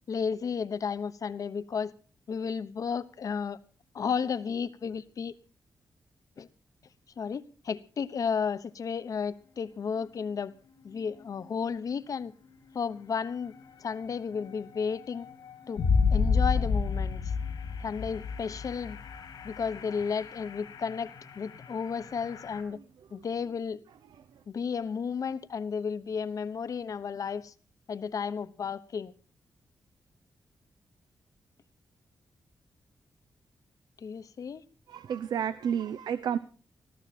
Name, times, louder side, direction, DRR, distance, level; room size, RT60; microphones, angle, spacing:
voice 1, 0.1-1.9 2.3-3.6 3.9-5.3 6.4-6.5 7.2-10.5 10.8-12.3 12.7-13.5 13.8-15.3 15.7-15.8 16.1-17.2 17.8-19.0 19.4-22.8 23.1-23.8 24.5-27.5 27.9-29.1 34.0-34.6, left 6 dB, 55° left, 1.1 m, -33 dB
sound 1, 11.0-11.1 11.4-11.5 13.5-13.6 13.9-22.6, left 5 dB, 85° left, 4.0 m, -31 dB
voice 2, 34.9-36.4, right 8 dB, 90° right, 0.7 m, -30 dB
20.0 x 14.0 x 4.3 m
wide cardioid pair, 130°, 7 cm